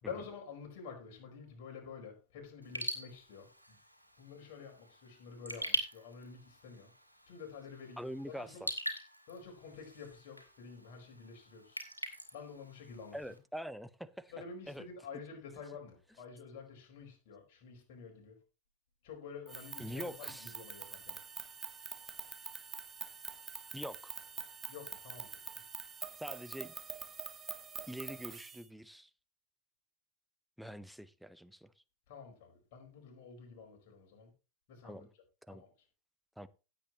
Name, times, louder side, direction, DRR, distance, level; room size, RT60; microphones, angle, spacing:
voice 1, 0.0-3.8 4.2-6.9 7.3-8.0 8.4-8.6 9.3-11.8 12.3-13.4 14.3-18.4 19.0-21.2 24.7-25.3 32.1-34.3 34.7-35.0 35.5-35.7, left 5 dB, 50° left, 4.7 m, -49 dB
Raindrop / Drip, 2.6-13.4, equal, 90° left, 2.5 m, -43 dB
voice 2, 8.0-8.7 13.1-14.3 14.7-14.9 19.8-20.5 23.7-24.1 26.2-26.7 27.9-29.1 30.6-31.7 34.8-35.1 35.5-35.6 36.4-36.5, equal, ahead, 0.7 m, -44 dB
sound 1, 19.5-28.6, right 6 dB, 20° right, 1.6 m, -45 dB
16.5 x 8.3 x 3.0 m
figure-of-eight pair, 90°, 0 cm